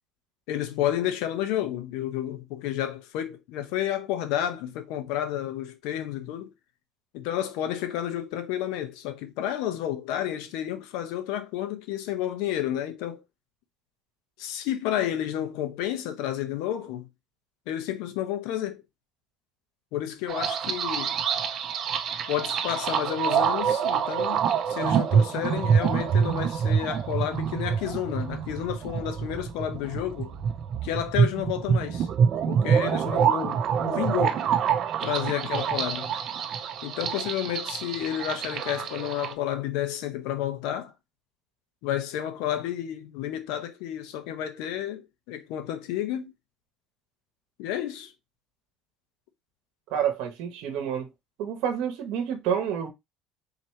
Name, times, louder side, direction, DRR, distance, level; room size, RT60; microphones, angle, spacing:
voice 1, 0.5-6.5 7.1-13.2 14.4-17.1 17.7-18.8 19.9-21.1 22.3-30.4 30.8-32.1 32.5-34.4 35.0-36.1 36.8-40.9 41.8-46.3 47.6-48.1, left 11 dB, 80° left, 0.8 m, -31 dB
sound 1, 20.3-39.3, right 7 dB, 50° right, 0.6 m, -26 dB
voice 2, 49.9-51.1 51.4-52.9, right 8 dB, 75° right, 1.1 m, -28 dB
4.1 x 2.9 x 3.2 m
cardioid pair, 115°, 0 cm